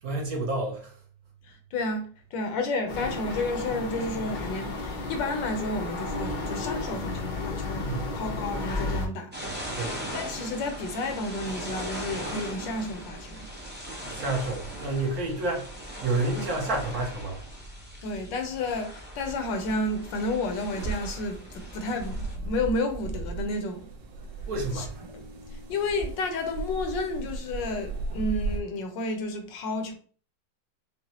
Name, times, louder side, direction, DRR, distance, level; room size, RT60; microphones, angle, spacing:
voice 1, 0.0-0.9 7.9-8.1 9.7-10.0 14.1-15.7 16.0-17.4 24.4-24.9, right 2 dB, 60° right, 1.3 m, -29 dB
voice 2, 1.4-9.3 9.7-9.8 10.1-13.5 16.3-16.5 18.0-23.9 24.7-24.9 25.1-25.3 25.7-29.9, left 2 dB, 80° left, 1.5 m, -31 dB
sound 1, 2.9-9.1, left 2 dB, 55° left, 0.5 m, -32 dB
sound 2, 9.3-22.4, equal, 15° right, 0.3 m, -39 dB
sound 3, 20.8-28.6, right 3 dB, 80° right, 1.4 m, -36 dB
5.9 x 2.1 x 2.9 m
omnidirectional pair, 2.0 m